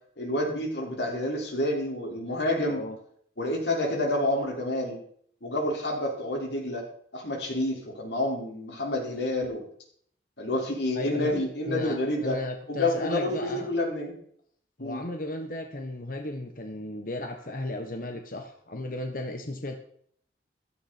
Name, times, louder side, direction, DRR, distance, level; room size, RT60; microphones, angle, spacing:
voice 1, 0.2-2.8 3.4-5.0 5.4-6.8 7.1-9.6 10.4-12.4 12.7-14.1 14.8-15.0, left 1 dB, 75° left, 0 dB, 5.0 m, -28 dB
voice 2, 2.7-3.0 10.9-11.3 11.7-13.7 14.8-19.8, left 2 dB, 50° left, 4 dB, 1.4 m, -35 dB
16.0 x 13.0 x 4.4 m, 0.62 s
head